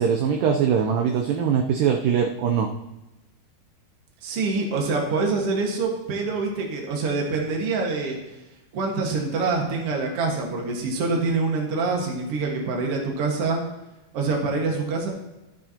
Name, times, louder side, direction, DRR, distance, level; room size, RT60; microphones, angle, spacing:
voice 1, 0.0-2.7, right 7 dB, 80° right, 3 dB, 2.0 m, -22 dB
voice 2, 4.2-8.2 8.7-13.6 14.1-15.1, right 3 dB, 50° right, 0 dB, 1.9 m, -25 dB
14.0 x 7.5 x 2.9 m, 1.0 s
omnidirectional pair, 4.6 m